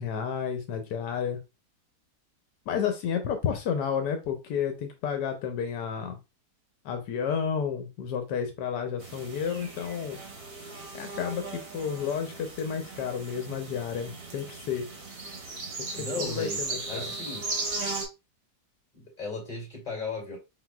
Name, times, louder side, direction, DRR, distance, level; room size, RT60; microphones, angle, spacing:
voice 1, 0.0-1.4 2.7-6.2 6.8-10.2 10.9-14.9 16.2-17.1, left 7 dB, 85° left, 1.3 m, -31 dB
sound 1, 9.0-18.0, right 3 dB, 65° right, 1.6 m, -37 dB
voice 2, 15.9-17.5 18.9-20.4, left 3 dB, 25° left, 2.4 m, -36 dB
4.6 x 3.9 x 2.2 m
omnidirectional pair, 1.8 m